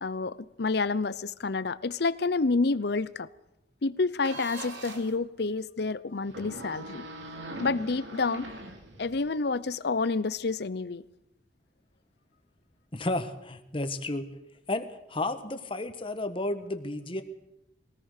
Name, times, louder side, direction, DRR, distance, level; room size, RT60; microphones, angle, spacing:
voice 1, 0.0-3.3 3.8-7.0 7.6-8.5 9.0-11.0, left 3 dB, 60° left, 0.7 m, -29 dB
sound 1, 4.2-5.2 6.2-9.3, right 1 dB, 80° right, 3.1 m, -42 dB
voice 2, 12.9-14.3 14.7-17.2, left 2 dB, 30° left, 1.5 m, -32 dB
22.5 x 18.0 x 6.7 m
head